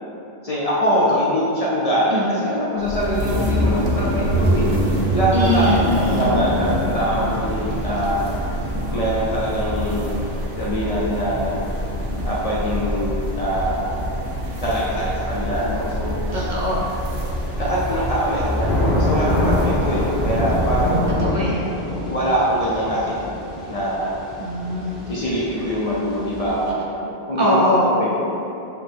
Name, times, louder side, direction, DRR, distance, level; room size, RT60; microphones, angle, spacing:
voice 1, 0.4-4.7 5.1-8.3 8.9-10.3 10.5-11.6 12.2-13.9 14.6-16.5 17.6-21.3 22.1-23.4 23.7-24.1 25.1-28.2, equal, 45° left, -7 dB, 0.5 m, -23 dB
sound 1, 2.8-21.3, equal, 80° right, 0.9 m, -25 dB
voice 2, 5.3-6.4 16.3-16.8 21.2-21.7 24.4-25.0 27.4-27.9, left 1 dB, 55° right, -5 dB, 0.6 m, -22 dB
Thunder / Rain, 16.7-26.7, left 1 dB, ahead, 0.6 m, -26 dB
5.7 x 2.0 x 3.3 m, 2.9 s
omnidirectional pair, 1.0 m